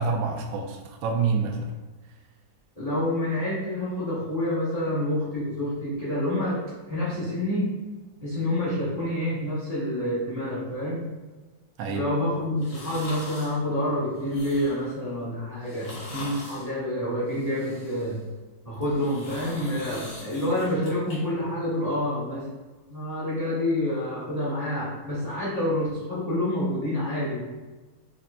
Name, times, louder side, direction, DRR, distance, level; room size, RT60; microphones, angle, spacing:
voice 1, 0.0-1.8 11.8-12.1, right 4 dB, 80° right, 3 dB, 1.3 m, -27 dB
voice 2, 2.8-6.6 6.9-7.8 8.2-11.1 11.9-18.2 18.6-22.5 22.9-27.4, left 1 dB, 40° left, -9 dB, 0.5 m, -28 dB
sound 1, 12.6-13.6 14.2-14.9 15.6-16.7 17.3-18.2 18.7-21.2 21.6-21.7, left 1 dB, 75° left, 1.9 m, -42 dB
5.4 x 2.4 x 2.2 m, 1.2 s
omnidirectional pair, 2.2 m